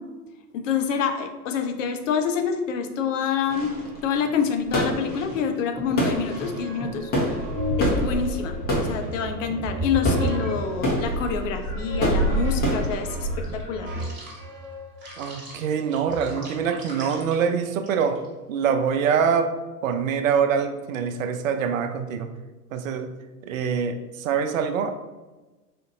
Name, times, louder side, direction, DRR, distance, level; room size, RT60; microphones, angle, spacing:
voice 1, 0.5-3.8 4.0-7.1 7.8-13.9, left 6 dB, 55° left, 6 dB, 0.6 m, -27 dB
sound 1, 3.5-13.6, equal, 20° left, 0.9 m, -27 dB
sound 2, 6.2-11.1 11.6-18.3, left 1 dB, 25° right, 1.4 m, -34 dB
voice 2, 15.2-18.2 18.5-19.5 19.8-22.3 22.7-23.1 23.4-25.0, right 7 dB, 55° right, 7 dB, 0.5 m, -24 dB
4.3 x 2.5 x 2.7 m, 1.2 s
figure-of-eight pair, 100°, 48 cm